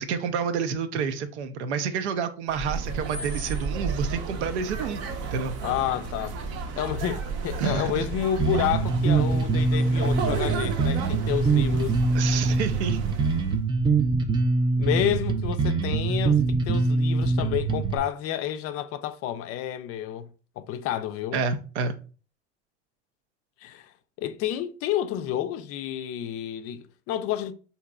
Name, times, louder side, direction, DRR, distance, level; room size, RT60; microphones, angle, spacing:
voice 1, 0.0-5.0 5.3-5.5 7.6-8.1 12.1-13.0 21.3-21.9, right 6 dB, 80° right, 0.6 m, -29 dB
sound 1, 2.5-13.6, right 4 dB, 45° right, 0.7 m, -33 dB
voice 2, 5.6-6.3 6.8-12.0 14.8-20.3 20.6-21.4 23.6-23.9 24.2-27.5, left 11 dB, 45° left, 0.4 m, -30 dB
Bass guitar, 8.4-18.0, right 3 dB, 15° right, 0.4 m, -24 dB
3.8 x 2.8 x 2.3 m
hypercardioid pair, 90°, 34 cm